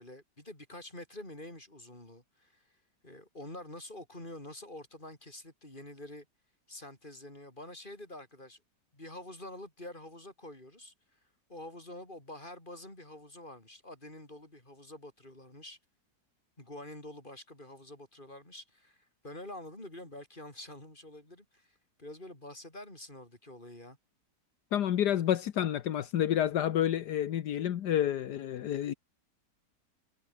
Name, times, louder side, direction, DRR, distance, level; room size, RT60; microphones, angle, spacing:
voice 1, 0.0-2.8 3.0-6.3 6.7-8.6 8.9-10.9 11.5-15.8 16.6-24.0, left 1 dB, 30° left, 6.6 m, -47 dB
voice 2, 24.7-28.9, left 11 dB, 75° left, 1.5 m, -29 dB
omnidirectional pair, 1.8 m